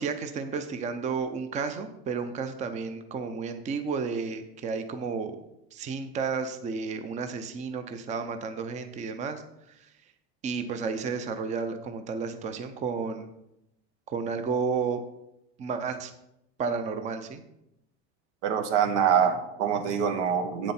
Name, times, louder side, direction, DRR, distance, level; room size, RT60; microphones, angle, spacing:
voice 1, 0.0-5.3 5.7-9.4 10.4-13.3 14.1-15.0 15.6-16.1 16.6-17.4, right 5 dB, 20° right, 8 dB, 0.6 m, -32 dB
voice 2, 18.4-20.7, right 7 dB, 80° right, 8 dB, 1.3 m, -25 dB
8.5 x 7.5 x 4.3 m, 0.84 s
supercardioid pair, 145°, 34 cm